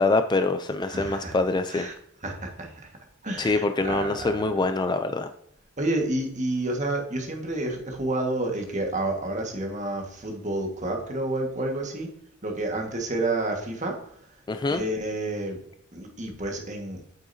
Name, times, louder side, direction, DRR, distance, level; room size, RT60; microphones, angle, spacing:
voice 1, 0.0-1.9 3.4-5.3 14.5-14.8, left 3 dB, 20° left, 9 dB, 0.4 m, -24 dB
voice 2, 0.9-1.4 1.7-1.9 2.2-3.0 3.2-4.3 5.8-12.1 12.4-14.3 14.7-15.6 15.9-17.0, right 2 dB, 35° right, 2 dB, 1.6 m, -30 dB
8.6 x 7.7 x 2.7 m, 0.72 s
head